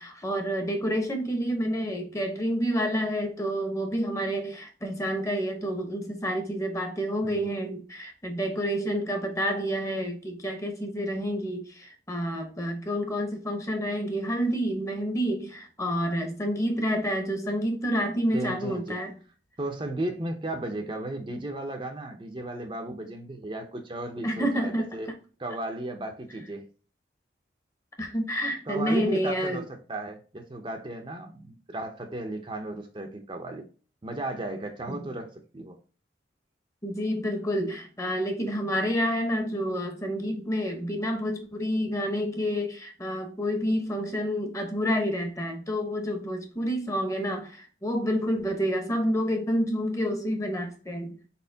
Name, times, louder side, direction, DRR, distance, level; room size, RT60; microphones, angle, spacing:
voice 1, 0.0-19.1 24.2-25.0 28.0-29.6 34.9-35.0 36.8-51.2, equal, 15° left, 0.9 m, -29 dB
voice 2, 18.3-19.0 19.6-25.1 25.4-26.7 28.7-33.6 34.0-35.8, right 1 dB, 25° right, 0.6 m, -35 dB
4.2 x 4.2 x 2.7 m
head